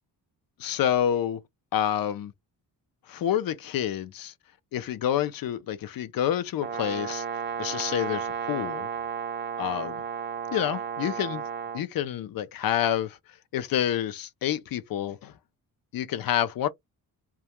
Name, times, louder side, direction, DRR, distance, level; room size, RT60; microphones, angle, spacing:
voice 1, 0.6-1.4 1.7-2.3 3.1-4.3 4.7-7.2 7.6-8.9 9.6-10.0 10.5-11.4 11.7-13.2 13.5-15.3 15.9-16.7, left 10 dB, 60° left, 0.5 m, -28 dB
Brass instrument, 6.6-11.8, right 7 dB, 30° right, 0.4 m, -33 dB
2.3 x 2.1 x 2.8 m
wide cardioid pair, 175°, 40 cm